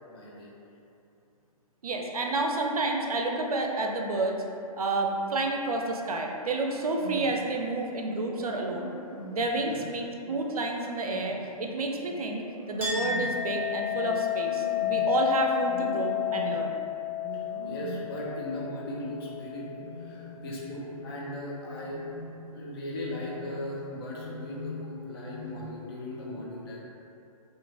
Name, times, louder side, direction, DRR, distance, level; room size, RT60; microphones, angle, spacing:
voice 1, 0.1-0.5 9.7-9.8 17.1-19.7 20.0-22.0 22.5-26.8, left 1 dB, 40° left, -4 dB, 0.6 m, -38 dB
voice 2, 1.8-4.4 4.8-8.9 9.3-16.8, right 2 dB, 75° right, 1 dB, 0.4 m, -30 dB
sound 1, 6.6-7.4 8.2-9.5 10.2-11.5 12.0-13.4 13.9-15.2 15.6-16.7 17.1-18.2 18.5-19.1 19.6-20.5 20.8-21.3 21.7-22.4 22.8-23.7 24.1-24.9 25.2-25.8 26.1-26.2, equal, 70° left, 1.3 m, -43 dB
Chink clink, 12.8-19.9, left 9 dB, 10° right, 0.6 m, -31 dB
2.9 x 2.5 x 2.4 m, 2.7 s
figure-of-eight pair, 125°, 19 cm